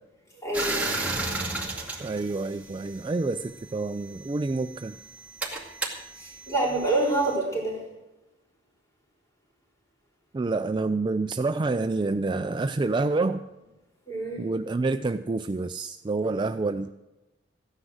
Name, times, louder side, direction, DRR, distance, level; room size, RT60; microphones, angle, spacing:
voice 1, 0.4-0.9 6.2-7.8 14.1-14.4, right 2 dB, 15° left, -3 dB, 4.1 m, -27 dB
sound 1, 0.5-3.2 4.1-7.3, right 2 dB, 10° right, 2.2 m, -33 dB
voice 2, 2.0-4.9 10.3-13.4 14.4-16.9, right 3 dB, 25° right, 9 dB, 0.4 m, -28 dB
15.0 x 9.8 x 6.4 m, 1.0 s
head